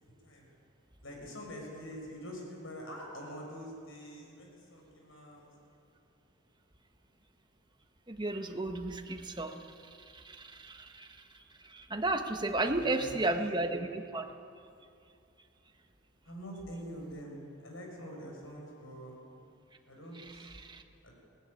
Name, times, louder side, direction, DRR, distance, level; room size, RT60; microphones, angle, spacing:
voice 1, 0.0-0.4 1.0-5.4 12.6-13.5 16.2-19.2 19.9-20.5 21.0-21.1, equal, 70° left, 0 dB, 6.7 m, -45 dB
voice 2, 8.1-9.6 10.1-11.1 11.6-14.3 20.1-20.8, right 2 dB, 20° right, 5 dB, 1.3 m, -34 dB
22.5 x 17.5 x 9.9 m, 2.6 s
head